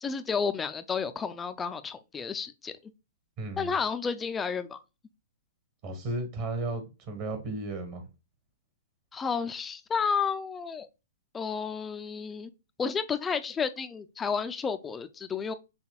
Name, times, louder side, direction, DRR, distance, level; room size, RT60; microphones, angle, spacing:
voice 1, 0.0-2.8 3.6-4.8 9.1-10.9 11.3-12.5 12.8-15.5, left 6 dB, 15° left, 0.4 m, -31 dB
voice 2, 3.4-3.7 5.8-8.1, right 2 dB, 40° right, 1.4 m, -34 dB
5.8 x 3.4 x 2.3 m
hypercardioid pair, 135°, 0 cm